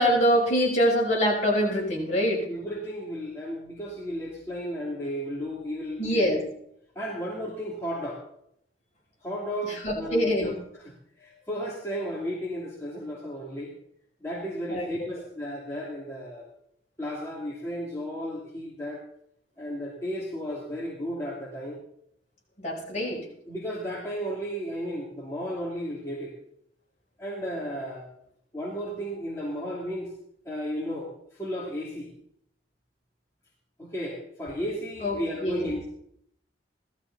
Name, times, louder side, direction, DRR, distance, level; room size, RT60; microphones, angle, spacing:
voice 1, 0.0-2.4 6.0-6.4 9.6-10.5 14.7-14.8 22.6-23.2 35.0-35.7, equal, 40° left, -3 dB, 5.6 m, -24 dB
voice 2, 2.5-6.5 6.9-8.2 9.2-10.9 11.2-13.7 14.2-16.5 17.0-19.0 19.6-21.8 23.0-23.1 23.4-26.4 27.2-28.1 28.5-30.1 30.4-32.1 33.8-35.9, equal, 15° left, -5 dB, 2.9 m, -34 dB
17.0 x 14.0 x 4.1 m, 0.70 s
head